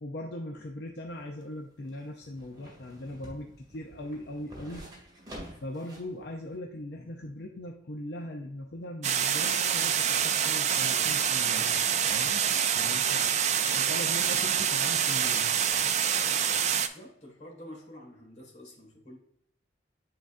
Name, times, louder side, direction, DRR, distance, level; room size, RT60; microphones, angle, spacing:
voice 1, 0.0-4.9 5.6-11.8 12.1-13.3 13.7-15.5, left 1 dB, 60° left, 1 dB, 0.6 m, -40 dB
sound 1, 1.0-6.1 6.5-6.6, equal, 20° right, 2.0 m, -48 dB
sound 2, 9.0-16.9, right 8 dB, 35° right, 0.3 m, -26 dB
voice 2, 16.8-19.2, left 1 dB, 35° left, -1 dB, 1.8 m, -48 dB
9.7 x 3.9 x 2.5 m, 0.75 s
head